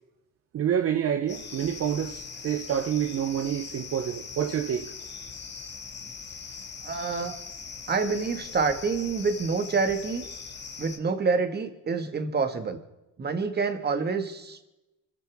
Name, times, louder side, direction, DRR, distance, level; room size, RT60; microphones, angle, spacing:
voice 1, 0.5-4.9, right 9 dB, 45° right, 1.0 m, -28 dB
sound 1, 1.3-11.0, left 5 dB, 35° left, 2.2 m, -41 dB
voice 2, 6.8-7.4 7.9-10.2 10.8-12.8 13.2-14.7, right 4 dB, 30° right, 2.0 m, -27 dB
25.5 x 15.0 x 3.7 m
cardioid pair, 105°, 31 cm